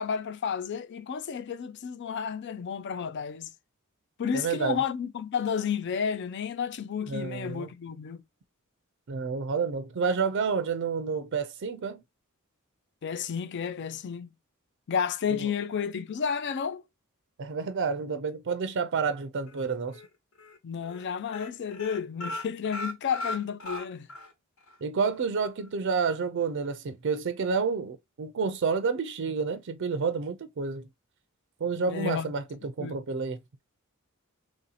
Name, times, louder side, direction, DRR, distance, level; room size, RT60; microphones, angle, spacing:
voice 1, 0.0-3.5 4.2-8.2 13.0-14.3 14.9-16.8 20.6-24.1 31.9-32.3 32.8-33.0, left 7 dB, 55° left, 0.4 m, -31 dB
voice 2, 4.3-4.8 7.1-7.7 9.1-12.0 15.3-15.5 17.4-20.0 24.8-30.9 31.6-33.4, right 5 dB, 60° right, 0.4 m, -29 dB
sound 1, 19.5-20.1 20.4-20.6 20.8-21.0 21.3-24.3 24.7-24.8 25.1-25.2, left 1 dB, 75° left, 1.3 m, -37 dB
3.1 x 2.8 x 4.0 m
head